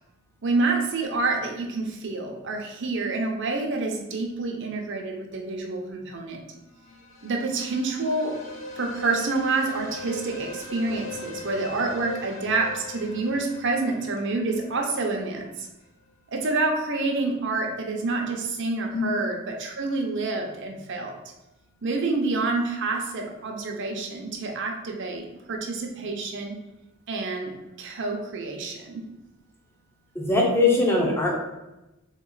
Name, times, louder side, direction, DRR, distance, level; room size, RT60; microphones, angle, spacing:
voice 1, 0.4-6.4 7.2-8.4 8.8-15.7 16.3-21.1 21.8-26.6 27.1-29.0, right 3 dB, 60° right, 2 dB, 0.7 m, -28 dB
sound 1, 6.7-15.5, left 2 dB, 65° left, 0.8 m, -40 dB
voice 2, 30.1-31.4, left 2 dB, 10° left, -2 dB, 0.8 m, -21 dB
3.5 x 3.1 x 3.8 m, 0.95 s
head